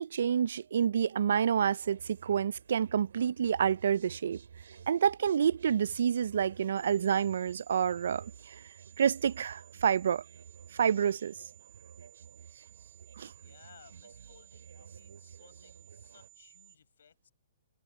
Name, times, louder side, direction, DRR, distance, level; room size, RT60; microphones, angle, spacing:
voice 1, 0.0-4.4 4.9-8.5 9.0-10.2 10.7-11.3 13.2-13.3, right 8 dB, 60° right, 0.3 m, -28 dB
sound 1, 1.5-16.3, right 7 dB, 75° right, 4.0 m, -53 dB
sound 2, 6.8-16.8, right 13 dB, 10° right, 0.6 m, -59 dB
voice 2, 13.3-17.3, left 7 dB, 70° left, 6.9 m, -60 dB
hypercardioid pair, 175°, 0 cm